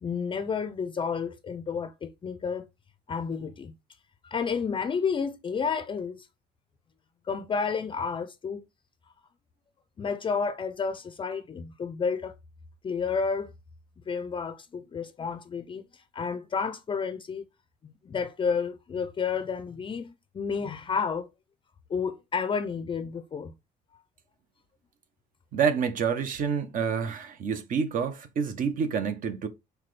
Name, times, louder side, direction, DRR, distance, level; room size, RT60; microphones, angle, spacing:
voice 1, 0.0-2.7 3.1-3.7 4.2-6.3 7.3-8.6 10.0-12.3 12.8-13.5 14.1-15.8 16.1-17.4 17.8-21.3 21.9-23.5, left 5 dB, 30° left, 0.5 m, -31 dB
voice 2, 25.5-29.5, right 6 dB, 55° right, 0.8 m, -28 dB
5.7 x 2.2 x 3.2 m
cardioid pair, 110°, 17 cm